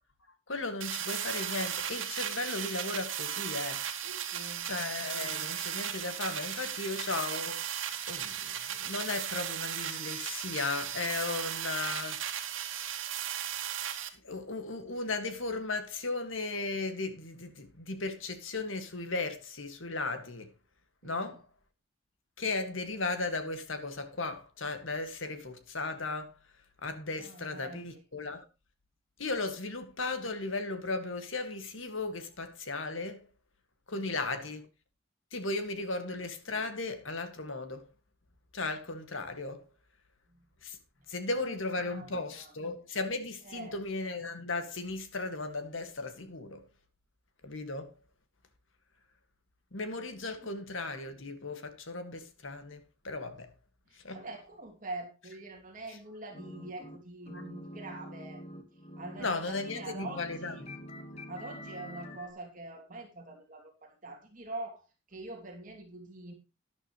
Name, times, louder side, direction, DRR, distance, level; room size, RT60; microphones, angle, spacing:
voice 1, 0.5-3.8 4.6-12.9 14.2-20.5 21.0-21.4 22.4-26.4 26.8-28.5 29.2-33.3 33.9-34.7 35.3-37.9 38.5-39.7 40.6-40.8 41.1-46.7 47.4-47.9 49.7-53.5 54.0-54.2 57.3-57.4 59.2-60.8, left 3 dB, 80° left, 2.0 m, -36 dB
sound 1, 0.8-14.1, right 9 dB, 80° right, 1.9 m, -36 dB
voice 2, 4.0-4.7 21.0-21.4 27.2-28.0 33.9-34.4 40.3-40.5 41.1-41.2 41.5-42.5 43.4-43.8 50.4-50.5 54.1-58.4 59.0-60.6 61.3-66.3, right 2 dB, 40° right, 2.7 m, -45 dB
sound 2, 56.3-57.0 57.2-62.3, equal, 30° left, 1.5 m, -46 dB
12.0 x 11.0 x 3.1 m
head